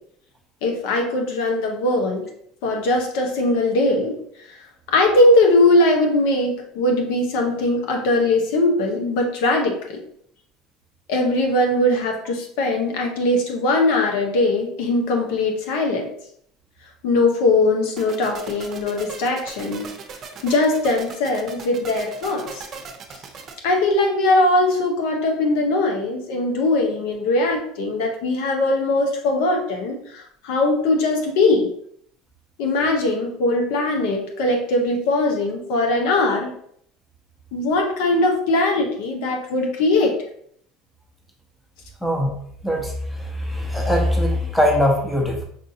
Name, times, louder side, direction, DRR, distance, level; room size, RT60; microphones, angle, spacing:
voice 1, 0.6-2.2 2.6-4.2 4.9-10.0 11.1-16.1 17.0-19.9 20.4-22.7 23.6-31.7 32.6-36.5 37.5-40.1, left 2 dB, 75° left, 2 dB, 0.8 m, -20 dB
sound 1, 18.0-23.5, right 5 dB, 40° right, 0.7 m, -38 dB
voice 2, 42.0-42.3 42.6-45.4, left 1 dB, 5° left, 1 dB, 1.0 m, -21 dB
5.2 x 2.6 x 2.7 m, 0.66 s
supercardioid pair, 100°, 0 cm